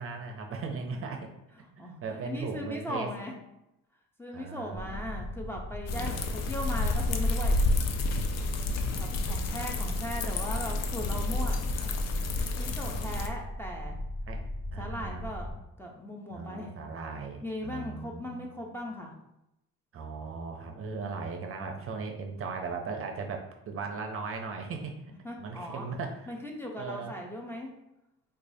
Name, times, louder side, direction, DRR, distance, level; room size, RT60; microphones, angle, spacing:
voice 1, 0.0-1.3 1.8-3.1 4.3-5.3 6.0-6.8 8.4-9.4 11.1-11.9 12.6-13.3 14.3-14.4 14.7-15.3 16.3-18.4 19.9-25.0 25.4-26.3 26.8-27.1, right 4 dB, 45° right, 4 dB, 0.5 m, -39 dB
voice 2, 1.8-3.3 4.2-7.6 9.0-11.6 12.4-14.0 14.8-15.5 15.8-16.8 17.4-19.1 25.2-25.9 26.3-27.7, equal, 10° left, -1 dB, 0.6 m, -38 dB
sound 1, 4.7-15.5, left 1 dB, 30° left, 1.1 m, -37 dB
sound 2, 5.9-13.3, left 2 dB, 60° left, 0.5 m, -30 dB
4.6 x 2.3 x 2.6 m, 0.89 s
cardioid pair, 105°, 30 cm